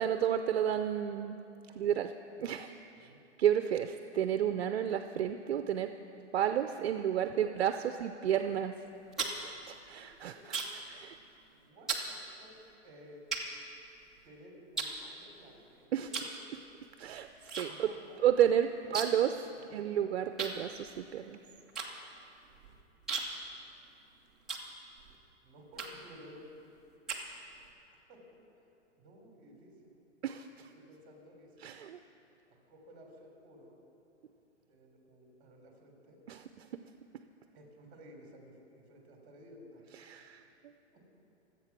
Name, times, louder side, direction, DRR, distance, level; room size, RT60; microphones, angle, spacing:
voice 1, 0.0-1.4 1.8-2.1 2.4-2.7 3.0-3.1 3.4-5.9 6.3-7.7 8.0-8.8 9.2-10.3 10.9-11.2 15.9-16.1 17.0-17.9 18.2-19.3 19.7-21.4 30.2-30.5 31.6-32.0 36.3-36.4 40.0-40.4, right 10 dB, 60° right, 8 dB, 0.6 m, -31 dB
sound 1, 8.8-10.9 11.2-11.5 11.9-12.1 12.7-12.8 13.3-14.3 14.7-15.6 16.1-16.4 16.7-17.7 17.9-18.0 18.3-19.3 19.6-19.7 20.4-25.1 25.7-26.2 26.6-27.7, right 4 dB, ahead, 0.5 m, -38 dB
voice 2, 11.5-12.6 12.8-13.2 14.2-16.2 17.7-18.2 18.8-19.1 19.6-19.9 25.4-26.4 28.1-28.2 28.6-28.7 29.0-29.9 30.7-31.8 32.7-33.8 34.7-36.2 37.5-39.8 40.9-41.0, equal, 20° right, 0 dB, 3.2 m, -55 dB
24.0 x 8.4 x 6.0 m, 2.8 s
hypercardioid pair, 165°, 36 cm